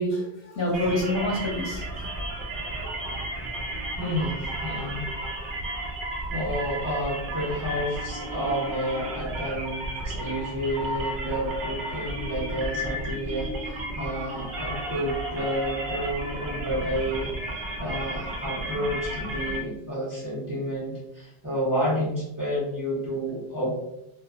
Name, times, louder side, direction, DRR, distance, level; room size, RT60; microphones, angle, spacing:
voice 1, 0.0-2.1, left 1 dB, 65° left, -3 dB, 1.0 m, -27 dB
sound 1, 0.7-19.6, right 1 dB, 55° right, 0.7 m, -33 dB
voice 2, 4.0-5.1 6.3-17.3 17.8-23.8, equal, 20° right, -8 dB, 0.7 m, -30 dB
2.8 x 2.3 x 2.3 m, 0.84 s
omnidirectional pair, 1.1 m